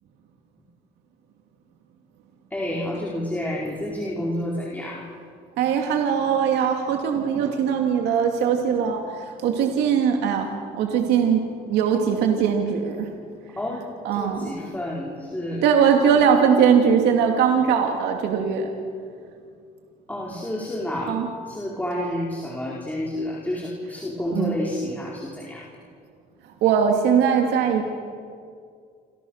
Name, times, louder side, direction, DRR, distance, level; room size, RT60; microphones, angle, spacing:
voice 1, 2.5-5.1 13.6-15.6 20.1-21.1 21.5-25.7, left 1 dB, 10° left, -3 dB, 4.6 m, -29 dB
voice 2, 5.6-13.1 13.5-13.6 14.0-14.5 15.6-18.7 21.1-21.3 24.3-24.5 26.4-27.9, right 7 dB, 85° right, 2 dB, 2.5 m, -21 dB
29.0 x 27.0 x 6.6 m, 2.3 s
cardioid pair, 110°, 17 cm